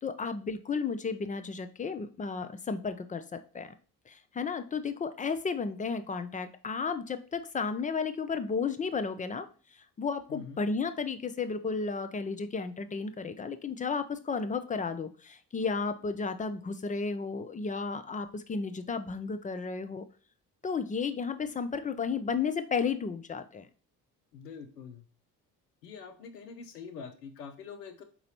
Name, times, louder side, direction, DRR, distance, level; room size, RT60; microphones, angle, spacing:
voice 1, 0.0-3.7 4.1-20.0 20.6-23.7, left 5 dB, 20° left, 10 dB, 0.3 m, -33 dB
voice 2, 24.3-25.0 25.8-28.0, left 6 dB, 85° left, 6 dB, 0.7 m, -45 dB
4.2 x 4.0 x 2.8 m, 0.38 s
figure-of-eight pair, 45°, 47 cm